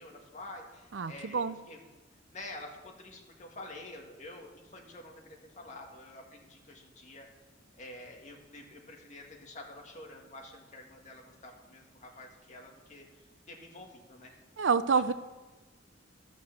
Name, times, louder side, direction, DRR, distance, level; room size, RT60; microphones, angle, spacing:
voice 1, 0.0-1.8 2.3-7.3 7.8-13.1 13.5-14.3, left 2 dB, 40° left, 0 dB, 2.0 m, -48 dB
voice 2, 0.9-1.6 14.6-15.1, right 5 dB, 80° right, 13 dB, 0.6 m, -27 dB
13.5 x 6.2 x 7.3 m, 1.2 s
head